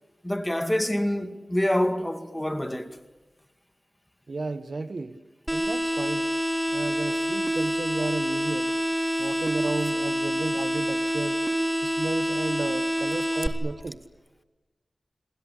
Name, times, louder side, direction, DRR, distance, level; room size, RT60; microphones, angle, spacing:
voice 1, 0.2-3.0, left 1 dB, 10° left, 2.2 m, -26 dB
voice 2, 4.3-5.2 5.5-6.3 6.7-8.7 9.2-11.4 11.8-14.0, right 3 dB, 60° right, 1.4 m, -33 dB
sound 1, 5.5-13.5, equal, 10° right, 3.6 m, -27 dB
29.0 x 20.5 x 8.6 m
wide cardioid pair, 55°, 0 cm